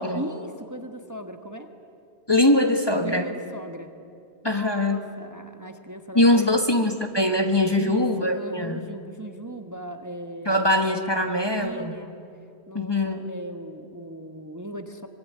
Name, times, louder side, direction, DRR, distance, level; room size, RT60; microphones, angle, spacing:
voice 1, 0.0-1.7 3.0-3.9 4.4-6.6 7.7-10.8 11.2-12.1 12.7-15.1, right 1 dB, 15° right, 6 dB, 1.3 m, -38 dB
voice 2, 2.3-3.3 4.4-5.0 6.1-8.9 10.4-11.9 12.7-13.2, left 1 dB, 25° left, 6 dB, 1.4 m, -22 dB
24.5 x 24.5 x 9.6 m, 2.4 s
omnidirectional pair, 1.1 m